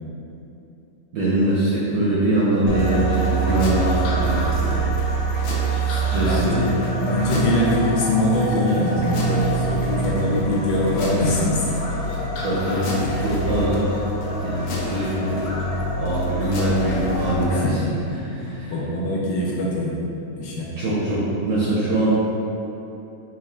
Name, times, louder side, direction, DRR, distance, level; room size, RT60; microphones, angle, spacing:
voice 1, 1.1-4.9 5.8-6.6 12.4-13.9 14.4-15.4 16.0-17.8 18.3-18.7 20.7-22.1, right 1 dB, 70° right, -8 dB, 0.9 m, -23 dB
sound 1, 2.7-17.4, right 2 dB, 90° left, 1.4 m, -25 dB
voice 2, 6.1-6.6 7.0-11.7 17.5-20.0 20.4-20.7, left 1 dB, 75° left, -5 dB, 1.1 m, -23 dB
4.1 x 2.4 x 3.2 m, 2.8 s
omnidirectional pair, 2.1 m